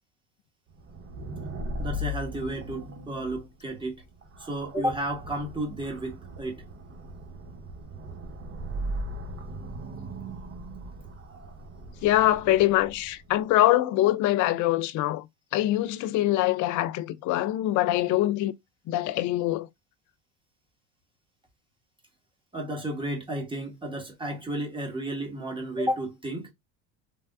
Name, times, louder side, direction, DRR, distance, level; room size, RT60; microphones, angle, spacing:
sound 1, 0.8-13.3, equal, 35° right, 0.8 m, -38 dB
voice 1, 1.8-4.0 4.4-6.6 22.5-26.5, right 1 dB, 10° right, 1.4 m, -32 dB
voice 2, 12.0-15.2 15.5-18.5 18.9-19.7, left 15 dB, 50° left, 0.4 m, -24 dB
3.4 x 2.1 x 2.3 m
supercardioid pair, 85°, 40 cm